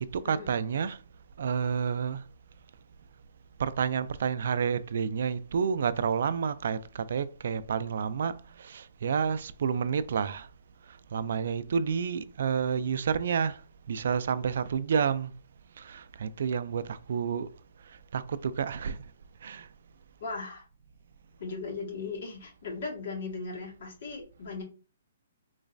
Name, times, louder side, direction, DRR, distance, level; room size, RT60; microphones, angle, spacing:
voice 1, 0.0-1.0 1.4-2.2 3.6-10.5 10.9-15.3 15.8-17.5 18.1-19.0 19.4-19.7, right 6 dB, 60° right, 0.3 m, -30 dB
voice 2, 20.2-20.6 21.4-24.6, left 4 dB, 50° left, 1.7 m, -37 dB
3.9 x 3.1 x 2.5 m
hypercardioid pair, 160°, 0 cm